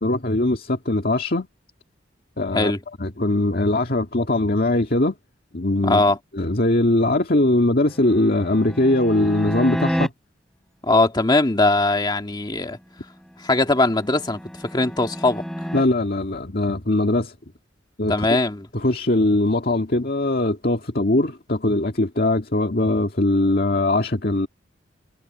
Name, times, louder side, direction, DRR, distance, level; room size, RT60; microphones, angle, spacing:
voice 1, 0.0-1.5 2.4-2.7 3.0-5.2 5.5-6.0 6.3-10.1 15.7-17.3 18.0-18.3 18.7-24.5, left 2 dB, 50° left, 2.0 m, -21 dB
voice 2, 5.8-6.2 10.8-12.8 13.4-15.4 18.1-18.7, left 2 dB, 25° left, 1.9 m, -20 dB
sound 1, 7.8-10.1 13.5-15.8, equal, 5° left, 3.4 m, -30 dB
head